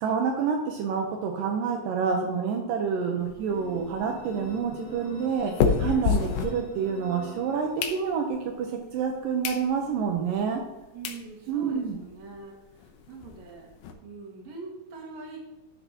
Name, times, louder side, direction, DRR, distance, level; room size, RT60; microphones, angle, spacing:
voice 1, 0.0-10.6 11.5-12.0, right 6 dB, 80° right, 2 dB, 2.5 m, -28 dB
sound 1, 3.2-7.2 7.5-8.5 9.0-9.1 9.4-9.7 10.1-10.2 10.7-10.8 11.0-11.2 11.7-11.8 11.9-12.1 12.4-12.5 12.8-13.9, left 6 dB, 75° left, 2.3 m, -30 dB
sound 2, 3.5-8.2, left 2 dB, 60° left, 3.5 m, -45 dB
voice 2, 10.9-13.7 14.0-15.4, right 4 dB, 55° right, -1 dB, 2.9 m, -43 dB
12.5 x 6.5 x 2.9 m, 1.1 s
omnidirectional pair, 3.9 m